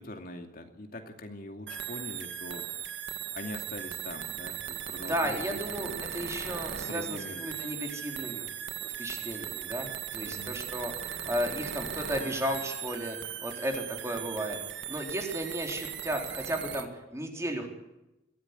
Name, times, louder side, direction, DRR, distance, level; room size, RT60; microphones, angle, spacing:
voice 1, 0.0-3.0 3.3-6.3 6.9-7.5 10.2-10.6, left 1 dB, 50° left, 4 dB, 2.6 m, -43 dB
sound 1, 1.7-16.9, right 9 dB, 70° right, 1.9 m, -38 dB
voice 2, 5.1-8.5 8.8-17.7, equal, 15° right, 2 dB, 4.1 m, -34 dB
23.0 x 15.5 x 9.7 m, 0.96 s
head